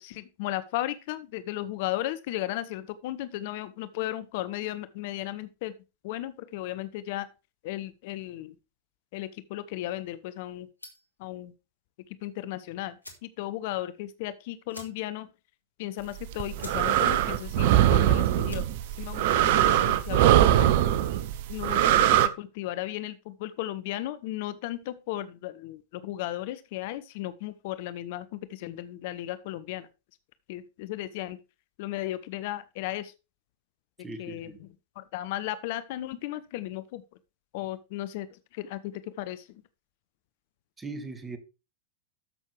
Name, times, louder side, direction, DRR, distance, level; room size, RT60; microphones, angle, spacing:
voice 1, 0.0-5.7 6.0-7.3 7.6-8.5 9.1-10.7 11.2-11.5 12.2-13.0 13.2-15.3 15.8-18.6 19.0-20.8 21.5-29.9 30.5-31.4 31.8-33.1 34.2-34.7 35.0-37.0 37.5-38.3 38.5-39.6, left 14 dB, 50° left, 14 dB, 0.6 m, -35 dB
sound 1, 10.8-11.2 12.5-12.6 13.0-13.3 13.7-13.8 14.0-14.2 14.7-15.3 15.6-15.7 16.2-16.3 16.6-16.9 17.2-17.6 18.3-18.7, left 1 dB, 85° left, 2.0 m, -47 dB
sound 2, 16.2-22.3, right 12 dB, 50° right, 0.7 m, -22 dB
voice 2, 34.0-34.6 40.8-41.4, right 2 dB, 15° right, 9 dB, 1.6 m, -39 dB
13.0 x 6.3 x 3.3 m, 0.28 s
figure-of-eight pair, 90°, 0 cm